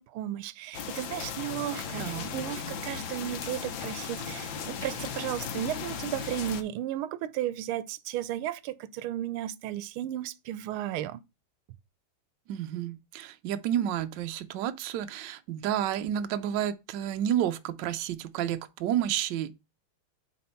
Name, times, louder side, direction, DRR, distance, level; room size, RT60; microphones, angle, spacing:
voice 1, 0.0-11.2, right 12 dB, 90° right, 1.5 m, -34 dB
sound 1, 0.7-6.6, left 7 dB, 70° left, 1.5 m, -36 dB
voice 2, 2.0-2.3 12.5-19.6, right 10 dB, 70° right, 1.2 m, -30 dB
8.4 x 3.5 x 4.4 m
omnidirectional pair, 2.3 m